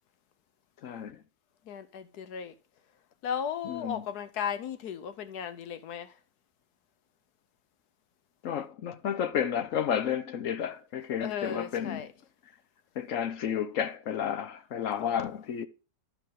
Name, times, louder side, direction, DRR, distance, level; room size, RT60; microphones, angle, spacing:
voice 1, 0.8-1.2 3.6-4.0 8.4-12.0 13.0-15.7, left 8 dB, 60° left, 1.0 m, -31 dB
voice 2, 1.6-2.5 3.2-6.2 11.2-12.1 15.0-15.3, left 8 dB, 75° left, 1.4 m, -36 dB
12.5 x 4.9 x 3.6 m
omnidirectional pair, 1.7 m